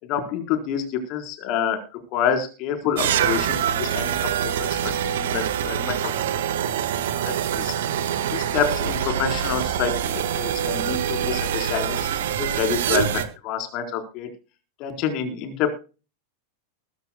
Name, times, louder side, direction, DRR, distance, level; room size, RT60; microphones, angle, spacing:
voice 1, 0.0-1.8 2.1-4.9 5.2-6.1 6.7-6.8 7.2-7.7 8.3-14.3 14.8-15.7, left 7 dB, 40° left, 6 dB, 4.2 m, -27 dB
sound 1, 3.0-13.3, right 9 dB, 55° right, 1.6 m, -25 dB
21.5 x 11.5 x 2.3 m, 0.33 s
figure-of-eight pair, 90°, 0 cm